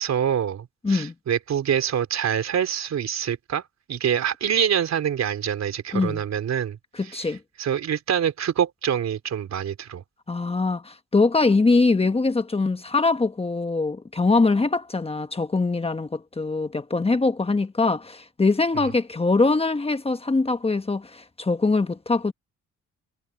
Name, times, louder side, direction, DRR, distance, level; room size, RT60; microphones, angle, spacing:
voice 1, 0.0-3.6 3.9-6.8 7.6-10.0, right 9 dB, 60° right, 3.8 m, -25 dB
voice 2, 6.9-7.4 10.3-22.3, left 3 dB, 20° left, 1.3 m, -23 dB
cardioid pair, 90°, 30 cm